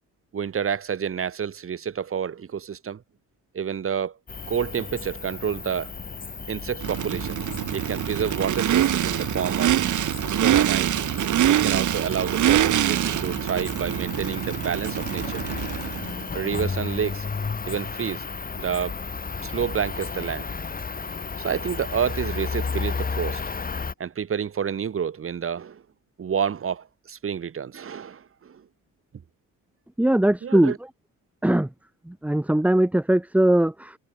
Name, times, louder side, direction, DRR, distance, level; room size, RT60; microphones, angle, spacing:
voice 1, 0.3-3.0 3.5-4.2 4.5-5.9 6.5-7.4 7.7-9.8 10.3-11.0 11.5-15.4 16.3-17.3 17.7-18.3 18.6-18.9 19.4-20.5 21.4-23.4 24.0-25.8 26.2-28.7 30.4-30.8, right 7 dB, 45° right, 5.2 m, -29 dB
Cricket, 4.3-23.9, left 5 dB, 25° left, 4.8 m, -33 dB
Race car auto racing / Idling / Accelerating revving vroom, 6.8-16.2, right 12 dB, 70° right, 2.5 m, -24 dB
voice 2, 30.0-30.7 31.4-31.7 32.1-33.9, right 1 dB, 5° right, 1.3 m, -20 dB
cardioid pair, 135°, 32 cm